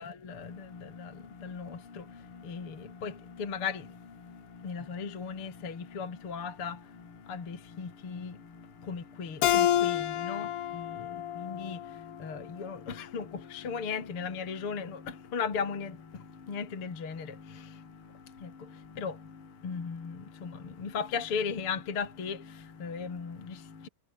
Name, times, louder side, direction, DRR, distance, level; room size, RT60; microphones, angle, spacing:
voice 1, 0.0-23.9, left 6 dB, 35° left, 3.7 m, -38 dB
Keyboard (musical), 9.4-12.7, left 11 dB, 70° left, 3.8 m, -29 dB
omnidirectional pair, 4.9 m